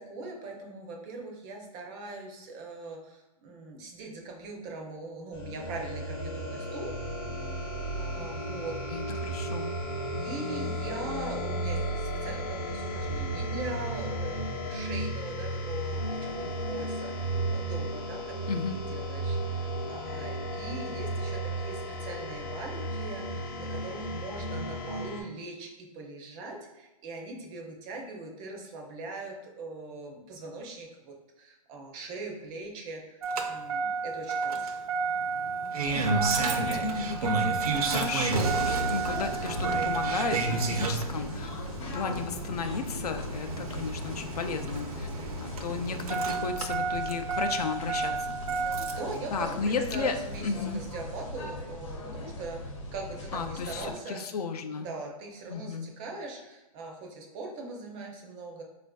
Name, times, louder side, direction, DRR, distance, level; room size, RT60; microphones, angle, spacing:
voice 1, 0.0-6.9 8.0-8.8 10.1-33.2 33.5-34.6 48.6-54.2 54.8-58.6, right 2 dB, 20° right, 1 dB, 0.4 m, -41 dB
sound 1, 5.3-25.2, right 1 dB, 30° left, 0.5 m, -34 dB
voice 2, 8.9-9.8 18.5-18.8 35.9-41.5 41.9-45.1 45.4-48.4 49.3-50.1 50.4-50.8 53.3-54.9 55.5-55.9, left 5 dB, 85° left, 7 dB, 0.5 m, -34 dB
Engine starting, 33.2-49.1 50.4-50.5, right 4 dB, 75° right, 0.5 m, -31 dB
sound 2, 35.8-53.9, left 2 dB, 55° left, 0.9 m, -40 dB
4.2 x 2.5 x 2.2 m, 0.99 s
hypercardioid pair, 150°, 19 cm